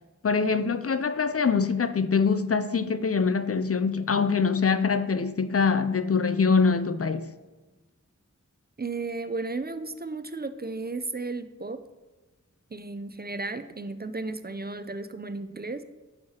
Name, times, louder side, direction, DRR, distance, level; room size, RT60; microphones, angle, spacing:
voice 1, 0.2-7.3, left 5 dB, 50° left, 0.4 m, -24 dB
voice 2, 8.8-11.8 12.7-15.8, right 3 dB, 30° right, 0.4 m, -34 dB
9.3 x 6.4 x 2.8 m
wide cardioid pair, 45°, 31 cm